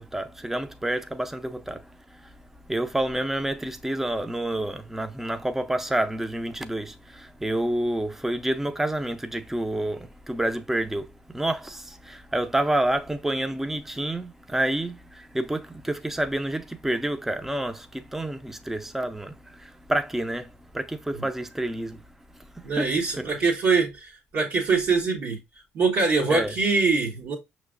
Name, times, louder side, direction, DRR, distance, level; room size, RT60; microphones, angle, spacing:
voice 1, 0.0-1.8 2.7-11.1 11.3-22.0 22.6-23.2 26.3-26.5, right 1 dB, 5° right, 0.5 m, -28 dB
voice 2, 22.6-25.4 25.7-27.3, right 4 dB, 65° right, 1.3 m, -23 dB
6.0 x 3.1 x 2.4 m
supercardioid pair, 65°, 5 cm